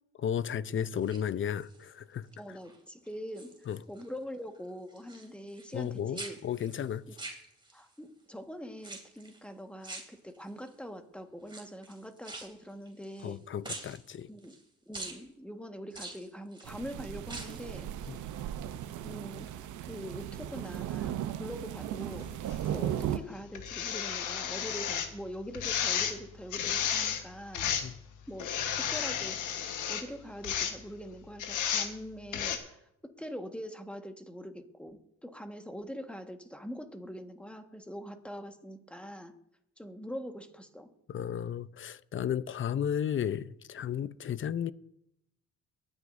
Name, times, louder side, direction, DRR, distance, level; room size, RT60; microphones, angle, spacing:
voice 1, 0.2-2.3 3.7-3.8 5.7-7.0 13.2-14.3 18.1-18.2 27.8-28.0 41.1-44.7, left 9 dB, 40° left, 0.6 m, -34 dB
sound 1, 0.9-1.9 2.4-2.8 3.1-4.1 4.3-5.9 6.1-7.9 8.8-9.4 9.8-10.7 11.4-13.4 13.6-14.6 14.9-15.2 15.9-16.7 17.2-17.7 18.0-18.1, right 2 dB, 15° right, 2.7 m, -45 dB
voice 2, 2.4-6.4 7.7-13.4 14.3-14.5 14.9-18.2 19.0-22.3 22.7-27.7 28.3-39.3 39.8-40.9, equal, 5° left, 1.5 m, -43 dB
sound 2, 16.6-23.2, right 11 dB, 75° right, 0.8 m, -36 dB
sound 3, 22.5-22.6 23.5-25.1 25.5-26.2 26.5-27.2 27.5-27.9 28.4-30.0 30.4-30.7 31.4-31.9 32.3-32.6, left 8 dB, 85° left, 1.3 m, -32 dB
23.0 x 9.7 x 2.6 m
cardioid pair, 90°, 30 cm